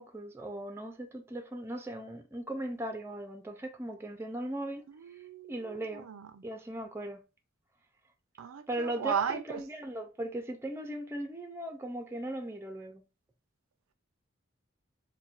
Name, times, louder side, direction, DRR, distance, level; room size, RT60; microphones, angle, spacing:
voice 1, 0.0-4.8 5.5-6.1 6.4-7.2 8.7-13.0, right 1 dB, 10° right, 0.5 m, -38 dB
voice 2, 5.0-6.4 8.4-9.6, right 7 dB, 90° right, 0.4 m, -36 dB
4.1 x 2.2 x 2.4 m
head